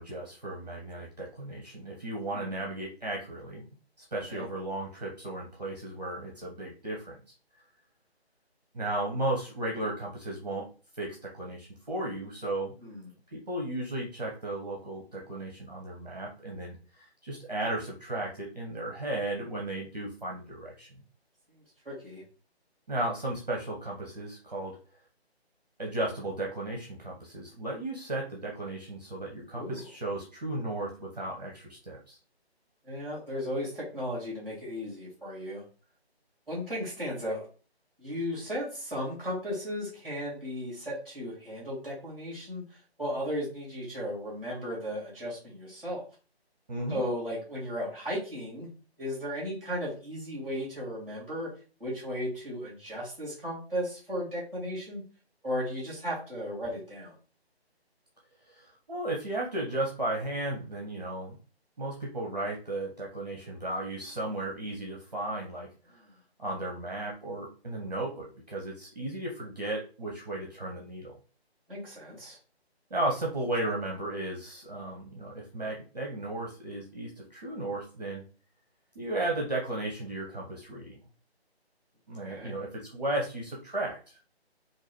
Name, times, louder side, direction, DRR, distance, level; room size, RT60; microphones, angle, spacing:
voice 1, 0.0-3.7 4.0-7.2 8.7-10.7 11.0-12.7 13.3-20.9 22.9-24.8 25.8-32.2 46.7-47.0 58.5-61.4 61.8-66.0 66.4-71.2 72.9-78.2 78.9-81.0 82.1-84.2, right 1 dB, 40° right, -1 dB, 0.8 m, -35 dB
voice 2, 2.3-2.7 4.3-4.5 12.8-13.1 21.5-22.2 29.5-29.9 32.8-35.6 36.5-37.5 38.0-46.0 46.9-48.7 49.0-51.5 51.8-55.0 55.4-57.2 65.9-66.1 71.7-72.4 82.2-82.6, equal, ahead, -6 dB, 1.9 m, -35 dB
3.8 x 2.6 x 3.0 m, 0.37 s
figure-of-eight pair, 150°, 32 cm